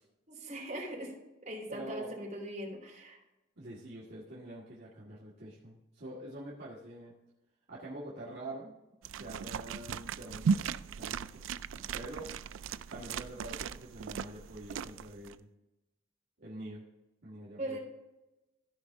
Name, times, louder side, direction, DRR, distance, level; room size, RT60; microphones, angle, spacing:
voice 1, 0.3-1.1 1.4-3.2 17.6-17.8, right 1 dB, 40° right, -2 dB, 3.6 m, -40 dB
voice 2, 1.7-2.1 3.6-7.1 7.7-8.7 9.2-10.6 10.9-11.4 11.7-12.3 12.9-15.5 16.4-16.8 17.2-17.8, right 1 dB, 55° right, -7 dB, 2.0 m, -45 dB
sound 1, 9.0-15.3, right 6 dB, 75° right, 0.3 m, -37 dB
15.0 x 5.2 x 3.6 m, 0.97 s
head